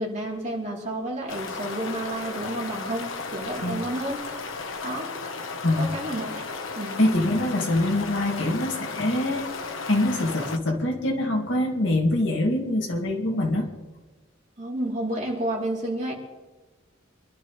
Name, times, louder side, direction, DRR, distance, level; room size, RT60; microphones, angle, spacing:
voice 1, 0.0-4.2 4.8-5.1 5.8-6.4 6.7-7.1 14.6-16.1, right 1 dB, 40° right, -3 dB, 3.4 m, -30 dB
sound 1, 1.3-10.6, left 4 dB, 90° left, 1.1 m, -34 dB
voice 2, 5.6-6.0 7.0-9.5 9.9-13.7, left 1 dB, 65° left, 0 dB, 2.4 m, -24 dB
26.5 x 12.0 x 3.3 m, 1.2 s
head